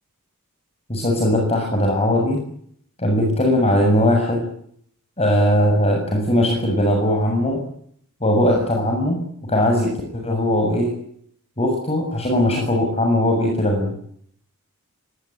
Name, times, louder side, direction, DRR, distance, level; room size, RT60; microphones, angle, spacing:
voice 1, 0.9-2.4 3.0-4.5 5.2-7.6 8.2-10.9 11.6-13.9, left 1 dB, 30° left, 2 dB, 7.2 m, -19 dB
24.5 x 20.5 x 9.3 m, 0.67 s
head